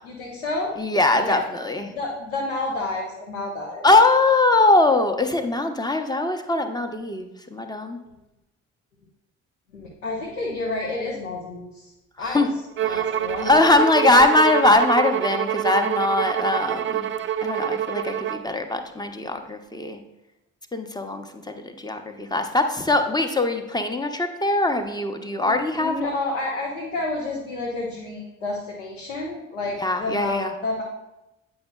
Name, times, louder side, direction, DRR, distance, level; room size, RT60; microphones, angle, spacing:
voice 1, 0.0-0.7 1.1-1.4 1.9-3.8 9.7-11.9 12.2-12.5 12.8-13.8 25.4-30.8, left 2 dB, 90° left, -2 dB, 0.7 m, -30 dB
voice 2, 0.8-1.9 3.8-8.0 12.3-12.5 12.8-13.0 13.4-17.1 17.4-20.0 20.7-26.1 29.8-30.5, left 2 dB, 10° left, 6 dB, 0.7 m, -21 dB
Bowed string instrument, 12.8-18.5, right 10 dB, 35° right, 0.4 m, -26 dB
8.6 x 5.4 x 2.2 m, 0.95 s
figure-of-eight pair, 45°, 37 cm